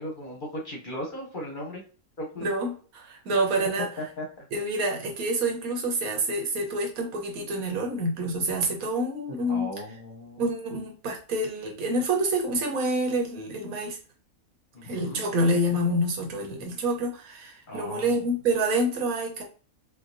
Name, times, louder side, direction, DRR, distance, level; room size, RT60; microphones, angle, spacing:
voice 1, 0.0-1.8 2.2-2.5 4.2-4.4 9.5-10.4 14.7-15.2 17.7-18.3, equal, 45° left, -1 dB, 0.7 m, -37 dB
voice 2, 2.4-3.9 4.5-9.7 10.4-14.0 14.8-19.4, right 1 dB, 90° right, 2 dB, 1.3 m, -27 dB
4.3 x 2.3 x 2.5 m, 0.38 s
omnidirectional pair, 1.5 m